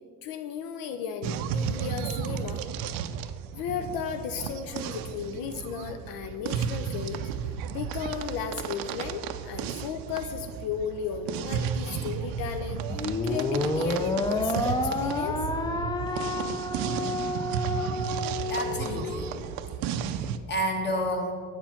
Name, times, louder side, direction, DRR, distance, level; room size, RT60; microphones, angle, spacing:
voice 1, 0.2-2.6 3.5-7.2 7.7-15.4, left 7 dB, 80° left, 7 dB, 0.6 m, -35 dB
sound 1, 1.2-20.4, right 8 dB, 85° right, 0.5 m, -33 dB
sound 2, 12.9-19.4, left 2 dB, 10° left, 0.4 m, -29 dB
voice 2, 18.5-19.3 20.1-21.3, equal, 30° left, 2 dB, 1.4 m, -30 dB
8.2 x 4.5 x 5.8 m, 2.2 s
cardioid pair, 120°, 34 cm